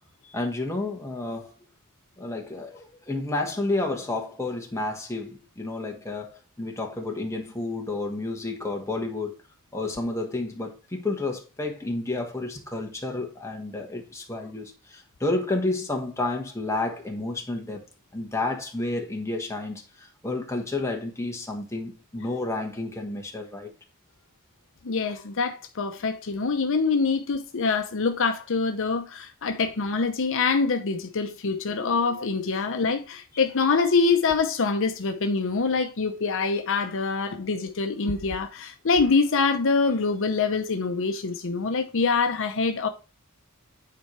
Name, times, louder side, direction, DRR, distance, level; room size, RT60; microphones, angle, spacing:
voice 1, 0.3-1.5 2.2-9.4 9.7-17.8 18.1-23.7 31.8-31.9, left 2 dB, 15° left, 1.4 m, -30 dB
voice 2, 24.8-42.9, left 4 dB, 65° left, 0.7 m, -25 dB
9.3 x 4.6 x 3.2 m
head